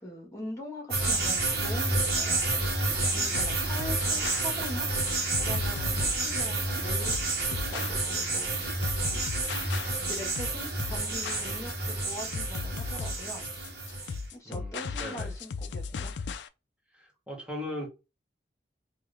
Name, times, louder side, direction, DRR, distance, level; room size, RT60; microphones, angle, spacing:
voice 1, 0.0-2.7 3.1-4.9 5.4-8.6 9.1-9.4 10.1-13.4 14.3-16.1, equal, 20° left, 1.4 m, -42 dB
sound 1, 0.9-14.2, right 2 dB, 60° right, 1.1 m, -29 dB
sound 2, 2.5-16.5, left 5 dB, 85° left, 0.4 m, -37 dB
voice 2, 14.4-15.3 16.9-17.9, left 1 dB, 5° right, 1.0 m, -39 dB
3.4 x 2.5 x 3.3 m
head